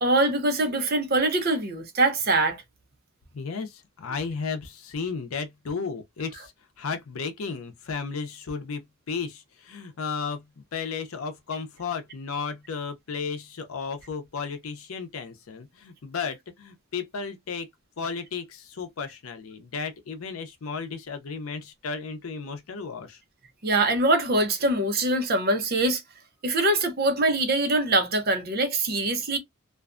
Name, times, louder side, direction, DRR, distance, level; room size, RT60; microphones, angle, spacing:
voice 1, 0.0-2.6 23.6-26.0 26.4-29.4, right 2 dB, 50° right, 0.7 m, -23 dB
voice 2, 3.3-6.5 6.8-17.7 18.0-23.2, left 5 dB, 90° left, 0.6 m, -34 dB
2.5 x 2.2 x 2.4 m
head